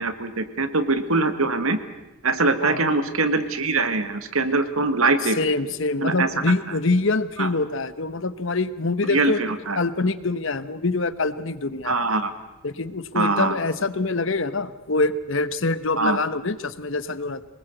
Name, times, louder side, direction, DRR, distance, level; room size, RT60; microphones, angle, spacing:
voice 1, 0.0-1.8 2.2-5.4 6.0-6.3 7.4-7.5 9.1-9.8 11.8-12.3 13.1-13.6 16.0-16.2, right 3 dB, 80° right, 10 dB, 1.9 m, -22 dB
voice 2, 5.2-9.4 9.8-11.9 12.6-17.4, left 3 dB, 65° left, 14 dB, 1.1 m, -25 dB
24.0 x 20.5 x 8.0 m, 1.0 s
head